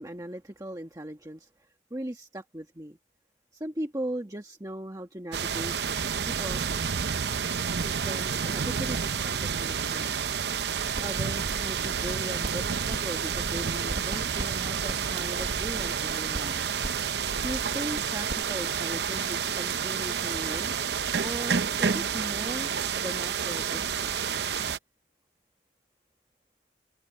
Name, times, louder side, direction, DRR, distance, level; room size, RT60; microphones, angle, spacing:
voice 1, 0.0-3.0 3.5-5.7 6.2-6.6 7.8-10.1 11.0-16.6 17.4-20.7 21.2-22.7 23.0-24.1, right 1 dB, 20° right, 1.4 m, -38 dB
sound 1, 5.3-24.8, right 7 dB, 70° right, 0.7 m, -29 dB
sound 2, 10.9-11.1 11.4-13.0 13.2-18.4, right 1 dB, 50° right, 1.4 m, -38 dB
head